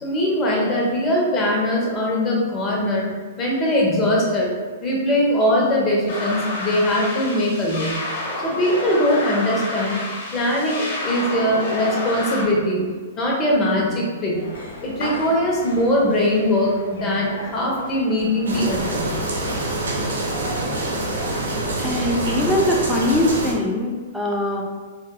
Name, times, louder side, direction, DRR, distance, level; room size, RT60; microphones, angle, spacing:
voice 1, 0.0-3.1 3.4-4.5 4.8-7.9 8.4-10.0 10.3-12.9 13.2-14.4 14.8-19.1, left 1 dB, 25° left, -3 dB, 0.9 m, -21 dB
sound 1, 6.1-12.4, left 2 dB, 50° left, 1.1 m, -29 dB
sound 2, 14.3-23.4, left 1 dB, 75° left, 0.8 m, -36 dB
sound 3, 18.5-23.5, right 2 dB, 75° right, 0.8 m, -26 dB
voice 2, 21.8-24.6, left 1 dB, ahead, -2 dB, 0.5 m, -22 dB
3.9 x 2.6 x 2.2 m, 1.4 s
hypercardioid pair, 125°, 0 cm